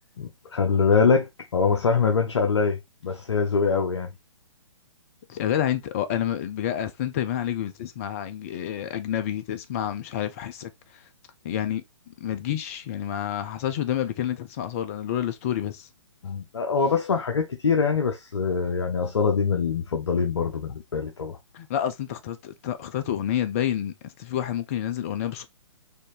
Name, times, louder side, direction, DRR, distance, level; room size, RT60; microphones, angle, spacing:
voice 1, 0.2-4.1 16.2-21.4, left 5 dB, 60° left, 0.7 m, -24 dB
voice 2, 5.3-11.0 11.4-11.8 12.2-15.9 21.5-25.4, left 10 dB, 30° left, 0.4 m, -29 dB
4.2 x 2.6 x 3.0 m
figure-of-eight pair, 125°, 16 cm